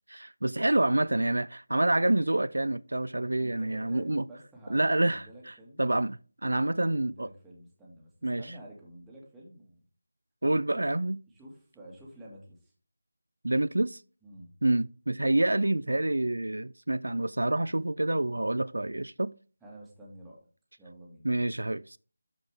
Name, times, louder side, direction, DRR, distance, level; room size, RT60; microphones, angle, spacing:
voice 1, 0.1-4.2 4.7-7.3 8.2-8.5 10.4-11.2 13.4-14.0 14.6-19.3 21.2-22.0, right 1 dB, 80° right, 0.3 m, -27 dB
voice 2, 3.4-5.8 6.6-8.1 8.4-9.8 11.3-12.7 14.2-14.5 19.6-20.4 20.8-21.2, right 1 dB, 5° right, 1.9 m, -49 dB
12.5 x 4.9 x 3.5 m
figure-of-eight pair, 165°, 0 cm